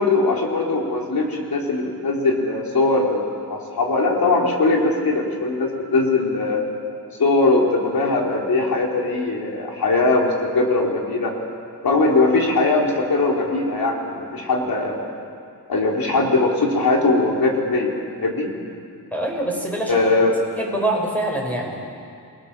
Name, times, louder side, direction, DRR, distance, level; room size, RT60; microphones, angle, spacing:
voice 1, 0.0-6.6 7.2-11.3 11.8-15.1 15.7-17.9 18.2-18.5 19.9-20.3, left 3 dB, 65° left, 0 dB, 3.9 m, -20 dB
voice 2, 19.1-20.0 20.6-21.8, right 1 dB, 5° left, -1 dB, 6.0 m, -24 dB
28.5 x 21.0 x 6.9 m, 2.3 s
wide cardioid pair, 110°, 38 cm